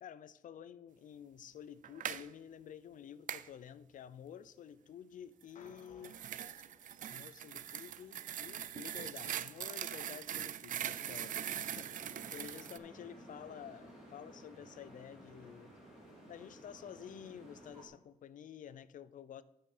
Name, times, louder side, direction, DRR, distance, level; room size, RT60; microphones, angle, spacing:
voice 1, 0.0-6.2 7.1-15.7 16.3-19.4, left 9 dB, 85° left, 15 dB, 0.5 m, -51 dB
sound 1, 1.8-2.3 3.3-3.5 5.7-12.8, right 10 dB, 80° right, 0.4 m, -42 dB
sound 2, 5.6-8.0, left 5 dB, 70° left, 1.0 m, -63 dB
sound 3, 10.8-17.9, equal, 5° right, 2.7 m, -55 dB
9.4 x 5.7 x 4.9 m, 0.88 s
wide cardioid pair, 165°, 13 cm